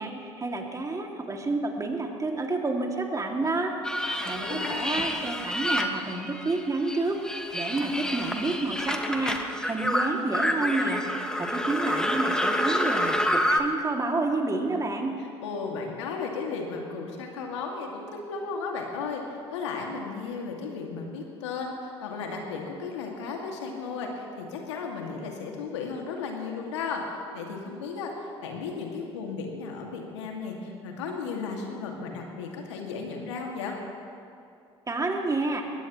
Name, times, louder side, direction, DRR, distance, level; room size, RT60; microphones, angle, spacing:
voice 1, 0.0-3.8 4.3-7.2 7.5-9.4 9.6-11.0 11.4-15.1 34.9-35.6, right 2 dB, 20° right, 2 dB, 2.3 m, -29 dB
sound 1, 3.8-6.6 6.9-13.6, equal, 5° left, 1.5 m, -28 dB
voice 2, 4.2-5.1 15.4-33.8, left 4 dB, 80° left, 1 dB, 2.1 m, -35 dB
21.0 x 17.0 x 3.1 m, 2.6 s
hypercardioid pair, 65°, 15 cm